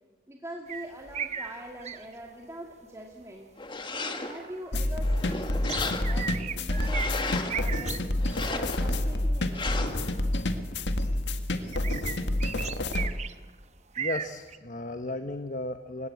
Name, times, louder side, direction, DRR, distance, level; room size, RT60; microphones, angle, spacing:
voice 1, 0.3-3.5 3.9-8.1 8.4-9.9 13.3-13.4, right 1 dB, 15° right, 0 dB, 2.1 m, -43 dB
sound 1, 0.7-2.2 4.0-4.7 5.7-7.1 7.5-8.0 8.3-8.7 9.3-9.4 10.9-11.1 11.7-13.5 13.9-14.6, right 7 dB, 40° right, 1.0 m, -36 dB
sound 2, 3.6-4.5 5.0-6.3 6.7-7.6 8.2-9.0 9.5-10.1, left 3 dB, 25° left, 1.8 m, -35 dB
sound 3, 4.7-13.1, left 1 dB, 80° left, 1.8 m, -28 dB
voice 2, 14.0-16.1, left 2 dB, 45° left, 8 dB, 1.1 m, -34 dB
28.5 x 17.0 x 8.5 m, 1.4 s
head